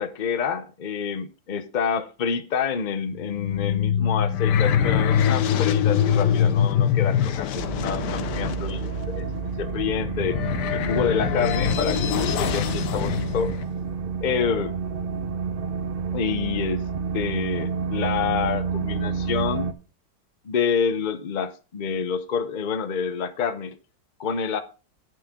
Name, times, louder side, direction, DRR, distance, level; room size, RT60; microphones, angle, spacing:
voice 1, 0.0-9.3 9.6-10.4 10.7-13.5 14.2-14.7 16.1-16.8 17.1-19.7 20.4-23.8 24.2-24.6, left 6 dB, 85° left, 10 dB, 0.4 m, -28 dB
sound 1, 3.1-13.6, left 9 dB, 65° left, 1.3 m, -24 dB
sound 2, 7.5-19.7, right 5 dB, 55° right, 0.6 m, -29 dB
10.5 x 8.7 x 3.6 m, 0.33 s
omnidirectional pair, 2.1 m